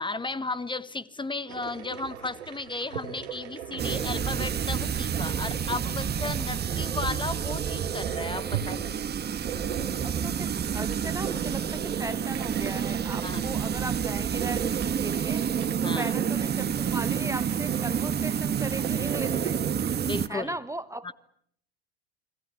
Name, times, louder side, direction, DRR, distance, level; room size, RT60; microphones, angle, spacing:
voice 1, 0.0-9.0 13.2-13.6 15.8-16.1 20.1-20.5 21.0-21.1, left 3 dB, 15° left, 1.3 m, -34 dB
sound 1, 1.5-20.1, right 9 dB, 85° right, 2.7 m, -38 dB
sound 2, 3.8-20.3, right 8 dB, 30° right, 1.5 m, -29 dB
voice 2, 10.0-15.4 15.8-19.6 20.3-21.1, right 2 dB, 10° right, 1.1 m, -37 dB
30.0 x 22.0 x 8.3 m
hypercardioid pair, 80°, 32 cm